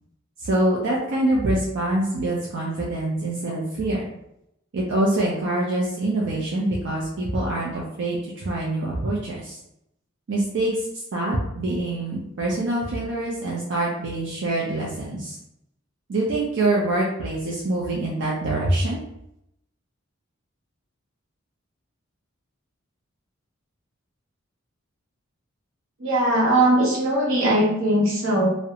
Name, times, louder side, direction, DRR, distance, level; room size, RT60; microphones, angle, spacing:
voice 1, 0.4-4.0 4.7-9.6 10.3-10.9 11.1-15.4 16.1-19.0, right 1 dB, 60° right, -4 dB, 0.5 m, -25 dB
voice 2, 26.0-28.5, right 1 dB, 80° right, -3 dB, 0.8 m, -20 dB
2.4 x 2.1 x 2.8 m, 0.79 s
head